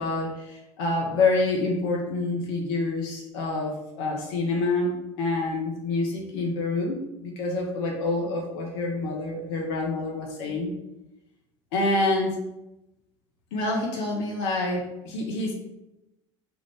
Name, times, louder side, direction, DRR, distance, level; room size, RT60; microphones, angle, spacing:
voice 1, 0.0-10.7 11.7-12.4 13.5-15.5, left 2 dB, 55° left, 0 dB, 0.8 m, -27 dB
3.6 x 2.4 x 4.3 m, 0.90 s
figure-of-eight pair, 65°, 16 cm